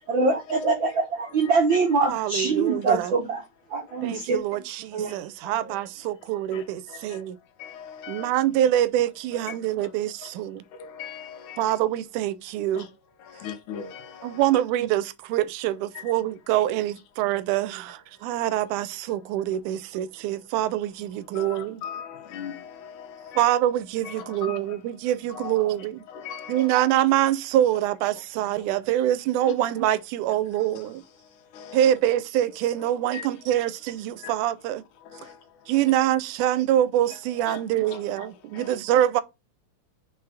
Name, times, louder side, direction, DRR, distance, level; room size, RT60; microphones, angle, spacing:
voice 1, 0.1-3.4 3.7-4.4 4.9-5.1 5.4-5.7, right 4 dB, 70° right, 1.1 m, -24 dB
voice 2, 2.1-3.1 4.0-7.4 8.1-10.6 11.6-12.9 14.2-21.8 23.4-26.0 26.5-31.0 31.7-34.8 35.7-39.2, right 12 dB, 90° right, 2.1 m, -25 dB
voice 3, 11.0-11.6 12.7-12.8 13.4-14.1 21.4-22.6 23.3-23.4 24.0-24.6 25.3-25.6 26.1-26.7 29.4-29.5 31.7-31.8 33.1-33.3 37.5-37.6 37.9-38.0, left 8 dB, 85° left, 2.5 m, -37 dB
4.8 x 4.8 x 4.8 m
omnidirectional pair, 3.5 m